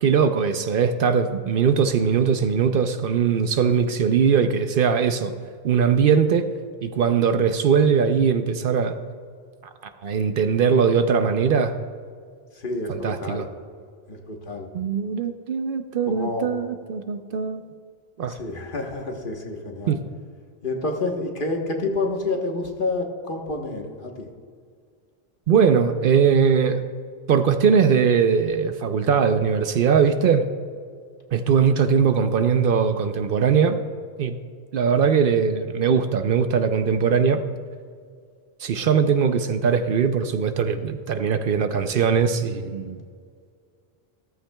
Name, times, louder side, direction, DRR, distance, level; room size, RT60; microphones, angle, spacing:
voice 1, 0.0-5.3 5.6-6.5 6.8-9.0 10.0-11.7 12.9-13.5 14.7-17.7 18.2-18.4 19.9-20.0 25.5-26.9 27.3-30.4 31.3-33.8 34.2-34.4 34.7-37.4 38.6-43.0, right 6 dB, 65° right, 9 dB, 0.7 m, -20 dB
voice 2, 12.6-13.5 14.1-14.7 16.1-16.5 18.4-20.0 20.6-24.3, left 2 dB, 55° left, 2 dB, 1.3 m, -28 dB
14.0 x 13.0 x 2.2 m, 2.1 s
omnidirectional pair, 1.0 m